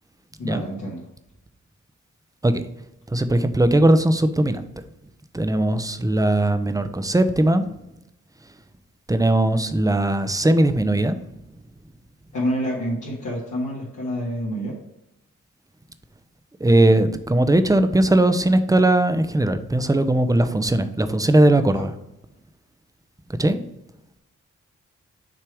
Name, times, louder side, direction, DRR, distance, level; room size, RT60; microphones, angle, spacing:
voice 1, 0.4-1.1 12.3-14.8 21.7-21.8, equal, 75° left, -6 dB, 1.7 m, -27 dB
voice 2, 3.1-4.6 5.3-7.7 9.1-11.2 16.6-21.9 23.4-23.6, right 1 dB, 10° right, 10 dB, 0.6 m, -19 dB
5.9 x 3.3 x 4.8 m, 0.88 s
cardioid pair, 50°, 31 cm